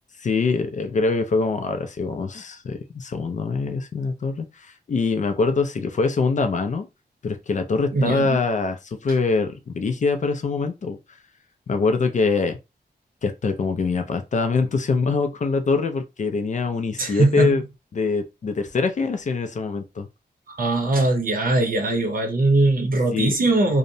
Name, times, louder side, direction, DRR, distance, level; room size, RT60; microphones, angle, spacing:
voice 1, 0.2-6.9 7.2-11.0 11.7-12.6 13.2-17.6 17.9-20.1 23.1-23.4, left 4 dB, 45° left, 0.4 m, -24 dB
voice 2, 7.9-8.4 17.0-17.5 20.5-23.8, right 2 dB, 55° right, 0.7 m, -21 dB
2.7 x 2.0 x 2.6 m
wide cardioid pair, 175°, 18 cm